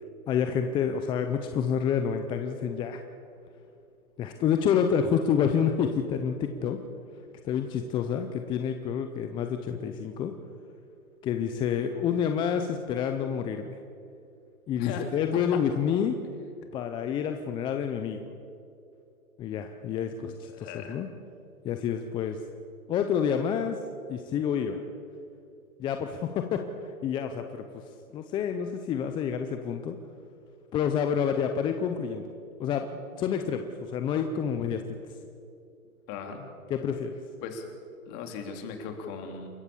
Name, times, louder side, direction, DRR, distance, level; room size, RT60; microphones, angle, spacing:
voice 1, 0.3-3.0 4.2-6.8 7.4-10.3 11.2-13.7 14.7-16.2 16.7-18.2 19.4-21.1 21.6-22.4 22.9-23.8 24.1-24.8 25.8-27.8 28.1-30.0 30.7-32.3 32.6-32.9 33.2-35.0 36.7-37.1, left 7 dB, 10° left, 6 dB, 0.5 m, -28 dB
voice 2, 14.8-15.1 20.5-21.0 36.1-36.4 37.4-37.7 38.1-39.5, left 6 dB, 35° left, 4 dB, 3.4 m, -37 dB
28.0 x 15.0 x 7.1 m, 2.6 s
hypercardioid pair, 130°, 43 cm